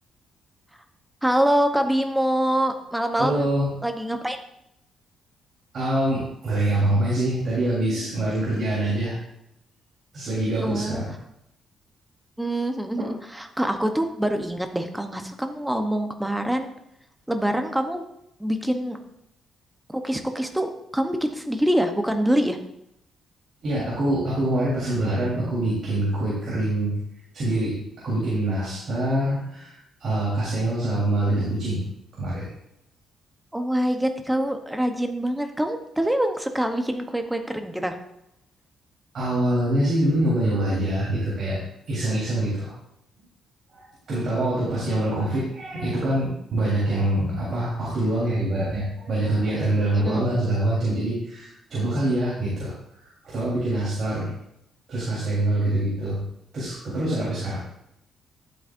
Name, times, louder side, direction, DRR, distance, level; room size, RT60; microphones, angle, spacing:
voice 1, 1.2-3.5 3.8-4.4 10.6-11.0 12.4-16.7 17.3-18.0 18.4-19.0 19.9-22.6 33.5-38.0 49.9-50.3, right 1 dB, 5° right, 5 dB, 0.8 m, -25 dB
voice 2, 3.2-3.7 5.7-9.2 10.1-11.1 13.0-13.1 23.6-27.0 27.3-31.8 32.2-32.5 39.1-41.6 41.9-42.7 43.7-52.7 53.2-54.3 54.9-56.2 56.5-57.6, right 1 dB, 45° right, -7 dB, 3.6 m, -25 dB
12.5 x 7.9 x 2.6 m, 0.79 s
cardioid pair, 155°, 0 cm